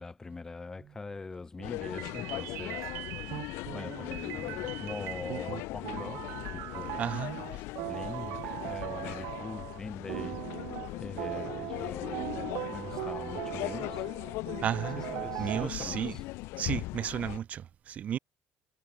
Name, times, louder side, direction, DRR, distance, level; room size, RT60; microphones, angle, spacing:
voice 1, 0.0-3.4 3.7-7.1 7.9-10.7 11.0-14.1 14.9-16.2, left 3 dB, 15° left, 4.6 m, -43 dB
sound 1, 1.6-17.4, left 21 dB, 75° left, 3.2 m, -39 dB
sound 2, 1.6-9.8 10.1-15.7, right 22 dB, 75° right, 4.0 m, -40 dB
voice 2, 7.0-7.4 14.6-15.0 15.4-16.1 16.6-18.2, right 9 dB, 35° right, 0.8 m, -33 dB
cardioid pair, 175°, 4 cm